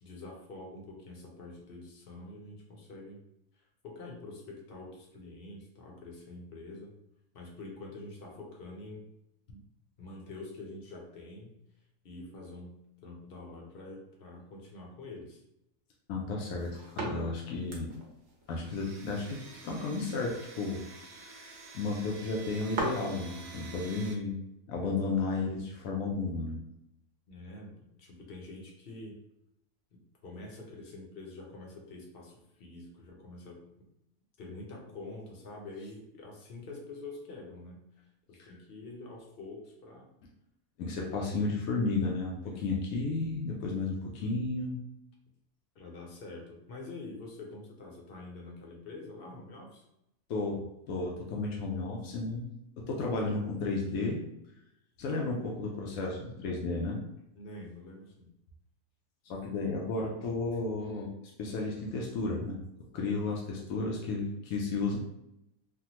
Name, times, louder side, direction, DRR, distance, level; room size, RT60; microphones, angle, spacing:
voice 1, 0.0-3.2 3.8-6.9 7.3-9.0 9.5-9.6 10.0-11.6 12.0-12.8 13.0-15.4 27.3-29.2 29.9-33.9 34.4-37.8 38.3-40.1 42.5-42.7 45.7-49.8 57.3-58.3, left 2 dB, 50° left, -1 dB, 0.8 m, -46 dB
voice 2, 16.1-17.9 18.5-20.8 21.2-24.4 24.7-26.6 38.4-38.5 40.8-44.8 50.3-50.6 50.9-52.5 52.8-54.2 55.0-57.0 59.3-61.1 61.4-62.6 62.9-65.0, left 3 dB, 90° left, -1 dB, 1.0 m, -33 dB
sound 1, 16.4-23.4, right 2 dB, 65° right, 1.0 m, -42 dB
Domestic sounds home sounds, 18.6-24.1, right 4 dB, 85° right, 1.1 m, -49 dB
3.4 x 2.2 x 2.8 m, 0.83 s
omnidirectional pair, 1.4 m